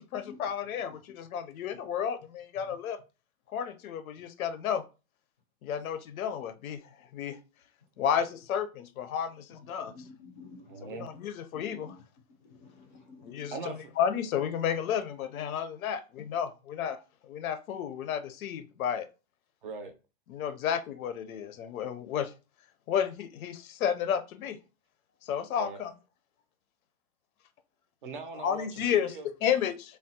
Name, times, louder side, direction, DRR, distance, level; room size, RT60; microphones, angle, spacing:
voice 1, 0.0-3.0 3.5-4.8 5.6-7.4 8.0-9.9 10.8-12.0 13.2-13.5 14.0-19.1 20.3-22.3 22.9-24.6 25.2-25.9 28.4-30.0, left 8 dB, 90° left, 0.6 m, -32 dB
voice 2, 9.9-10.9 11.5-11.6 12.5-13.5, left 4 dB, 35° left, 0.4 m, -50 dB
voice 3, 10.7-11.1 13.5-13.9 19.6-19.9 25.6-25.8 28.0-29.3, right 4 dB, 40° right, 0.4 m, -40 dB
3.4 x 2.0 x 2.6 m
hypercardioid pair, 175°, 41 cm